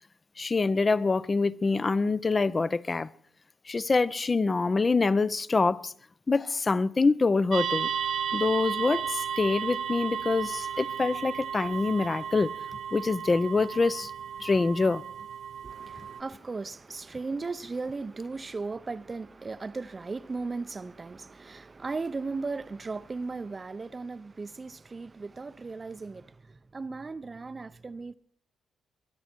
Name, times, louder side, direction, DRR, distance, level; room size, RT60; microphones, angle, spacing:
voice 1, 0.4-3.1 3.7-5.9 6.3-7.9 8.3-12.5 12.9-14.1 14.4-15.0, left 3 dB, 30° left, 0.6 m, -25 dB
sound 1, 7.5-16.2, right 8 dB, 65° right, 0.9 m, -34 dB
voice 2, 15.6-28.1, right 3 dB, 30° right, 0.6 m, -37 dB
22.5 x 11.0 x 4.5 m
cardioid pair, 80°, 0 cm